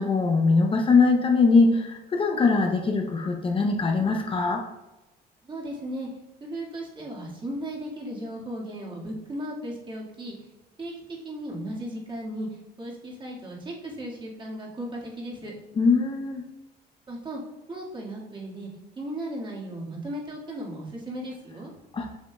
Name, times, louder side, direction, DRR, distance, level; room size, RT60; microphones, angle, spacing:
voice 1, 0.0-4.6 15.8-16.4 21.9-22.1, left 4 dB, 30° left, 2 dB, 0.7 m, -21 dB
voice 2, 5.4-6.1 6.4-10.3 10.8-10.9 11.2-12.5 12.8-15.5 17.1-17.4 17.7-18.7 19.0-21.7, right 1 dB, 30° right, -4 dB, 1.9 m, -36 dB
7.2 x 5.7 x 2.3 m, 0.98 s
cardioid pair, 110°, 17 cm